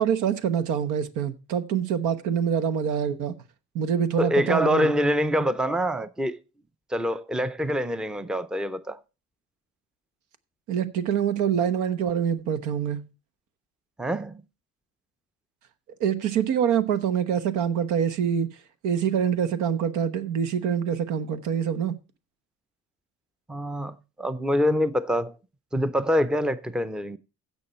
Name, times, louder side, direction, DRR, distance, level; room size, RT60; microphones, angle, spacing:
voice 1, 0.0-3.4 3.7-4.9 10.7-13.0 16.0-18.5 18.8-22.0, right 8 dB, 85° right, 1.2 m, -25 dB
voice 2, 4.2-6.4 6.9-9.0 14.0-14.4 23.5-25.4 25.7-27.2, equal, 5° right, 0.5 m, -25 dB
15.5 x 6.1 x 4.3 m
cardioid pair, 130°, 29 cm